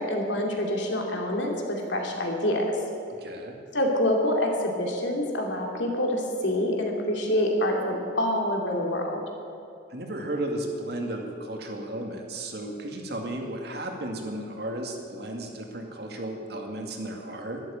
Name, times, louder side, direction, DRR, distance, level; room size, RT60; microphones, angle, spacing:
voice 1, 0.0-2.6 3.7-9.2, left 1 dB, 75° left, 1 dB, 2.7 m, -26 dB
voice 2, 3.2-3.6 9.9-17.6, right 1 dB, 60° right, 2 dB, 2.2 m, -34 dB
12.0 x 12.0 x 8.8 m, 2.6 s
head